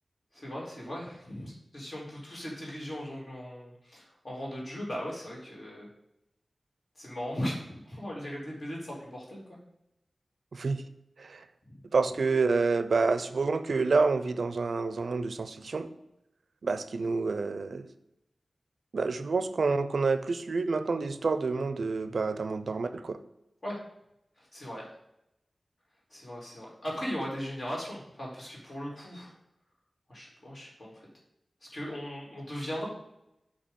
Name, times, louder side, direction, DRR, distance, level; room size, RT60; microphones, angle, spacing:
voice 1, 0.3-5.9 7.0-9.4 23.6-23.8 24.4-24.8 26.1-29.3 30.1-31.1 31.6-32.9, equal, 50° left, -4 dB, 2.3 m, -38 dB
voice 2, 10.5-10.8 11.2-11.4 11.9-15.9 16.6-17.9 18.9-23.2, right 4 dB, 80° right, 10 dB, 0.4 m, -28 dB
7.0 x 2.8 x 5.2 m, 0.84 s
cardioid pair, 50°, 0 cm